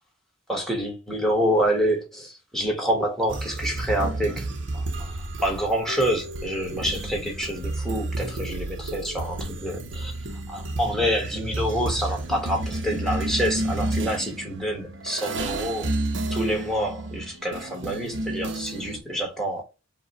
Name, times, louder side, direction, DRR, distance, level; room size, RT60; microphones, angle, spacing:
voice 1, 0.5-4.4 5.0-5.1 5.4-10.1 10.5-15.9 16.3-19.6, equal, ahead, 1.2 m, -27 dB
sound 1, 3.3-19.0, right 2 dB, 65° right, 0.7 m, -31 dB
4.8 x 2.2 x 4.0 m
head